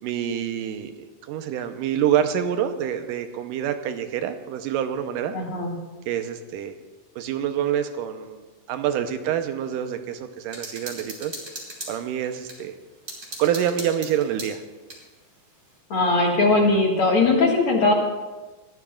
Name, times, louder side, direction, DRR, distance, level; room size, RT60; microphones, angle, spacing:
voice 1, 0.0-5.3 6.1-6.7 7.2-11.4 11.9-12.7 13.4-14.6, right 9 dB, 85° right, 8 dB, 2.4 m, -26 dB
voice 2, 5.3-5.7 15.9-17.9, left 3 dB, 45° left, -1 dB, 2.3 m, -20 dB
sound 1, 10.5-12.6 13.1-15.0, right 1 dB, 25° right, 3.7 m, -38 dB
20.5 x 15.5 x 2.4 m, 1.2 s
omnidirectional pair, 3.8 m